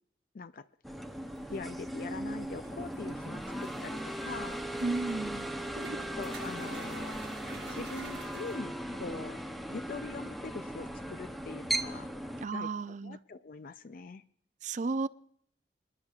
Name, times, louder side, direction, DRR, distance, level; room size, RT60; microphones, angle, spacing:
sound 1, 0.8-12.5, right 1 dB, ahead, 0.7 m, -38 dB
sound 2, 1.0-8.6, right 3 dB, 70° right, 1.2 m, -50 dB
voice 1, 1.5-4.6 6.2-7.2 7.7-9.4 9.7-12.1 12.5-14.2, left 4 dB, 55° left, 13 dB, 0.4 m, -43 dB
voice 2, 4.8-5.5 12.4-13.2 14.6-15.1, right 3 dB, 45° right, 15 dB, 0.4 m, -33 dB
26.5 x 10.5 x 2.4 m, 0.65 s
head